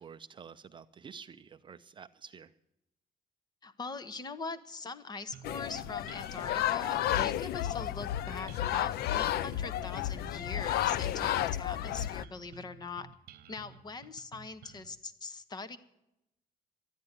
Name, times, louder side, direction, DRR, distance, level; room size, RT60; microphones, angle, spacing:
voice 1, 0.0-2.5, right 6 dB, 30° right, 9 dB, 0.5 m, -49 dB
voice 2, 3.6-13.1 13.5-15.8, left 4 dB, 25° left, 13 dB, 0.9 m, -42 dB
sound 1, 5.3-14.9, right 8 dB, 75° right, 1.0 m, -54 dB
sound 2, 5.4-12.2, left 12 dB, 80° left, 0.5 m, -32 dB
13.0 x 10.5 x 9.4 m, 0.86 s
cardioid pair, 175°, 16 cm